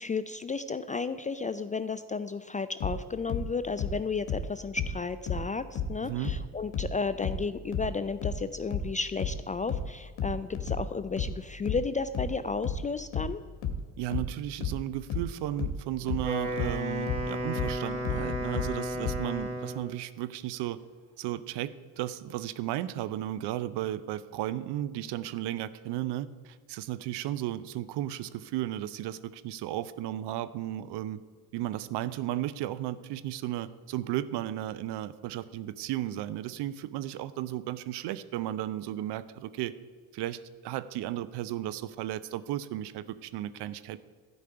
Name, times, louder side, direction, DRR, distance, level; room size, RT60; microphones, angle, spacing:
voice 1, 0.0-13.4, left 4 dB, 20° left, 13 dB, 0.3 m, -33 dB
sound 1, 2.8-6.0 6.2-19.3, left 4 dB, 60° left, 1.5 m, -33 dB
voice 2, 6.0-6.3 14.0-20.8 21.2-31.2 31.5-39.7 40.1-44.0, right 13 dB, 60° right, 15 dB, 0.7 m, -34 dB
Wind instrument woodwind instrument, 16.1-19.9, equal, 90° right, 2.7 m, -33 dB
11.5 x 5.3 x 8.7 m, 1.5 s
hypercardioid pair, 55°, 46 cm